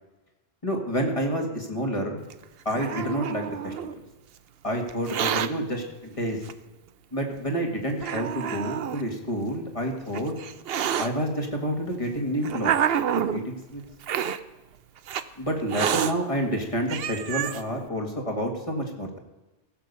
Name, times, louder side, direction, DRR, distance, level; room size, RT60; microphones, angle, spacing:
voice 1, 0.6-2.2 2.7-4.0 4.6-6.4 7.1-10.3 11.0-12.7 13.1-13.8 15.4-19.2, equal, 30° left, 1 dB, 2.0 m, -29 dB
Hiss, 2.3-4.0 4.9-5.5 6.5-6.6 7.4-7.5 8.0-9.0 9.9-11.1 11.9-13.4 14.0-14.4 15.1-15.2 15.7-16.1 16.6-16.7 16.9-17.6, right 9 dB, 70° right, 0.8 m, -28 dB
16.0 x 6.9 x 6.8 m, 1.1 s
omnidirectional pair, 1.1 m